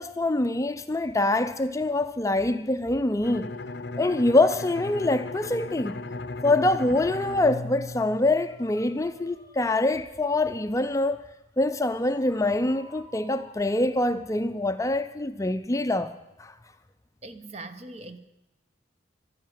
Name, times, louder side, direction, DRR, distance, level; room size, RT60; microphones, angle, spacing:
voice 1, 0.0-3.5 4.0-6.0 6.4-11.2 11.6-16.1 16.4-16.5, left 2 dB, 15° left, 0.5 m, -25 dB
Bowed string instrument, 3.2-8.9, left 2 dB, 65° left, 0.6 m, -36 dB
sound 1, 7.6-11.8 12.0-13.9, equal, 90° right, 4.5 m, -53 dB
voice 2, 17.2-18.2, right 2 dB, 35° right, 0.9 m, -41 dB
13.0 x 10.5 x 9.2 m
head